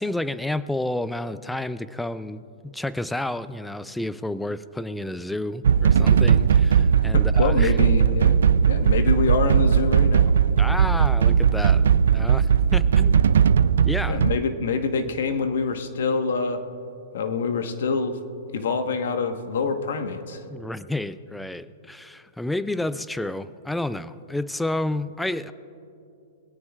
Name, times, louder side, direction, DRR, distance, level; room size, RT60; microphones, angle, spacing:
voice 1, 0.0-7.8 10.6-13.2 13.8-14.2 20.5-25.5, left 1 dB, 5° left, 15 dB, 0.4 m, -30 dB
sound 1, 5.6-14.4, right 7 dB, 85° right, 0.3 m, -18 dB
voice 2, 7.1-8.4 8.7-10.3 14.1-16.6 17.1-18.2 18.5-20.4, left 4 dB, 75° left, 7 dB, 1.2 m, -26 dB
21.5 x 17.5 x 2.4 m, 2.7 s
hypercardioid pair, 145°, 0 cm